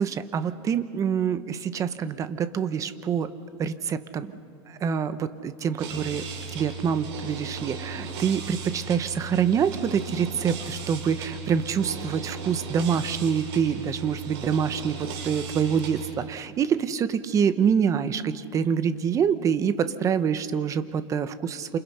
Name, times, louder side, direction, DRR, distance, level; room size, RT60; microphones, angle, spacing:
voice 1, 0.0-3.3 3.6-4.3 4.7-6.3 6.5-21.8, right 7 dB, 20° right, 12 dB, 1.0 m, -26 dB
sound 1, 5.8-16.1, right 5 dB, 60° right, 5.9 m, -37 dB
29.0 x 27.5 x 5.7 m, 2.3 s
supercardioid pair, 150°, 15 cm